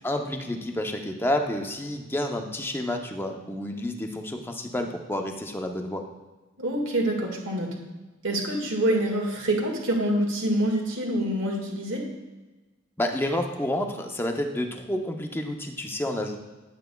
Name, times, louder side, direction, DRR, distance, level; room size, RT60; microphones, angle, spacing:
voice 1, 0.0-6.1 13.0-16.4, left 1 dB, 10° left, 3 dB, 0.6 m, -29 dB
voice 2, 6.6-7.7 8.2-12.1, right 1 dB, 70° right, 0 dB, 1.8 m, -26 dB
9.1 x 9.0 x 2.3 m, 1.2 s
head